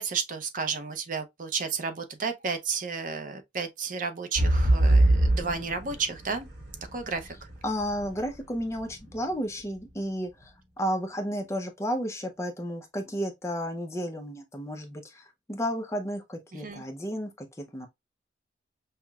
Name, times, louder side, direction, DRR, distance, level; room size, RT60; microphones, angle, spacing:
voice 1, 0.0-6.5 6.9-7.4 16.5-16.8, right 5 dB, 45° right, 0.6 m, -32 dB
sound 1, 4.4-8.2 8.8-8.9, right 1 dB, 65° right, 1.2 m, -23 dB
voice 2, 7.6-17.9, equal, 15° left, 0.6 m, -32 dB
5.6 x 2.2 x 2.3 m
head